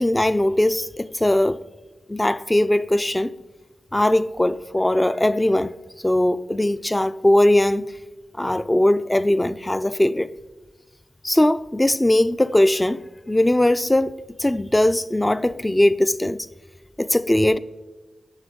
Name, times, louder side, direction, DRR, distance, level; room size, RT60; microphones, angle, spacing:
voice 1, 0.0-1.6 2.1-3.3 3.9-5.7 6.0-7.9 8.4-10.3 11.2-13.0 13.3-14.1 14.4-16.5 17.0-17.6, left 1 dB, 15° left, 0.4 m, -20 dB
11.5 x 9.0 x 3.6 m
cardioid pair, 45°, 0 cm